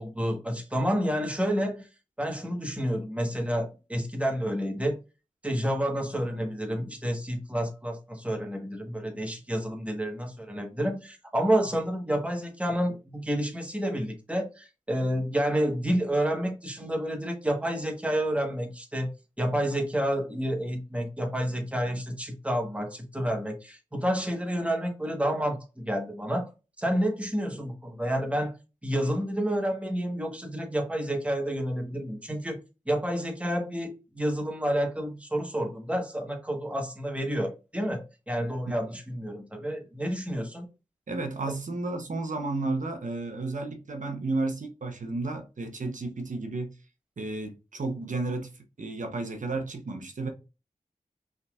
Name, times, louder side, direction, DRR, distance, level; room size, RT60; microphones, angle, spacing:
voice 1, 0.0-1.9 2.2-5.0 5.4-19.1 19.4-26.5 26.8-28.5 28.8-32.6 32.9-40.6, equal, 10° right, 1.3 m, -29 dB
voice 2, 41.1-46.7 47.2-50.3, right 3 dB, 70° right, 0.9 m, -32 dB
5.4 x 3.7 x 2.4 m
wide cardioid pair, 90°, 14 cm